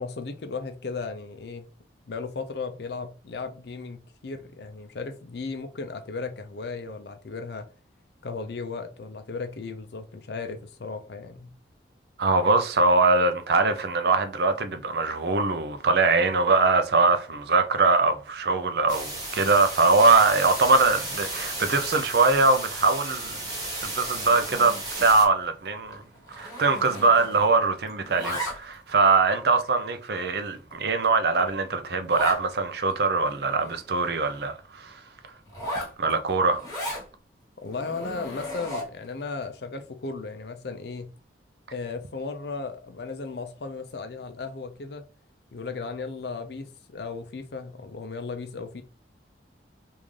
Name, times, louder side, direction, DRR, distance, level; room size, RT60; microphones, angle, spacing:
voice 1, 0.0-1.7 2.1-7.7 8.2-11.5 37.6-41.1 41.7-45.0 45.5-48.8, left 4 dB, 65° left, 0.5 m, -35 dB
voice 2, 12.2-23.4 23.8-26.0 26.3-35.0 36.0-36.6, right 3 dB, 60° right, 0.5 m, -22 dB
sound 1, 18.9-25.3, right 2 dB, 20° right, 1.2 m, -34 dB
Zipper (clothing), 24.1-25.1 25.4-25.7 25.9-27.6 27.9-28.9 29.5-29.6 30.2-30.3 30.7-30.8 31.0-31.1 31.4-31.5 32.1-32.4 32.9-33.0 33.2-34.5 35.5-37.1 37.7-39.1, equal, 20° left, 1.3 m, -36 dB
3.6 x 2.6 x 3.2 m
head